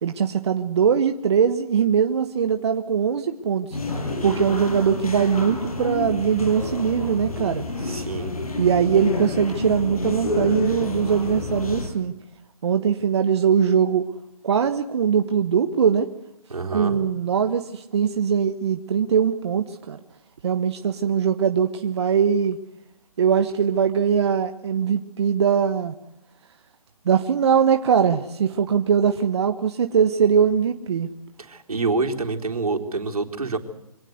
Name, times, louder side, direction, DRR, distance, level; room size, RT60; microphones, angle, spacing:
voice 1, 0.0-3.8 4.2-8.0 8.6-12.1 12.6-14.0 14.4-16.1 16.7-20.0 20.4-22.6 23.2-25.9 27.0-31.1, right 7 dB, 50° right, 7 dB, 1.4 m, -21 dB
sound 1, 3.7-11.9, left 2 dB, 75° left, 6.8 m, -29 dB
voice 2, 7.8-8.3 16.5-17.0 31.4-33.6, right 3 dB, 80° right, 3 dB, 4.1 m, -27 dB
25.0 x 18.0 x 8.1 m, 0.85 s
figure-of-eight pair, 150°, 19 cm